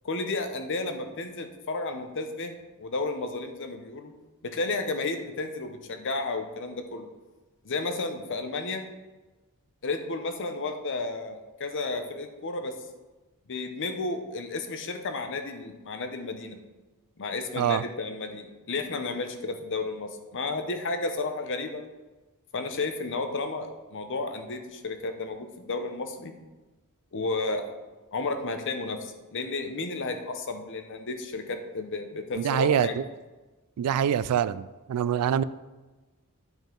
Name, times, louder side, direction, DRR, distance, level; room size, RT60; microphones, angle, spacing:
voice 1, 0.0-2.5 2.8-4.1 4.4-7.1 7.6-8.9 9.8-12.7 13.5-16.6 17.2-21.9 22.5-26.3 27.1-27.7 28.1-33.0, left 3 dB, 60° left, 6 dB, 0.8 m, -32 dB
voice 2, 32.4-33.0 33.8-35.4, right 9 dB, 85° right, 16 dB, 0.3 m, -25 dB
9.2 x 5.4 x 3.8 m, 1.2 s
head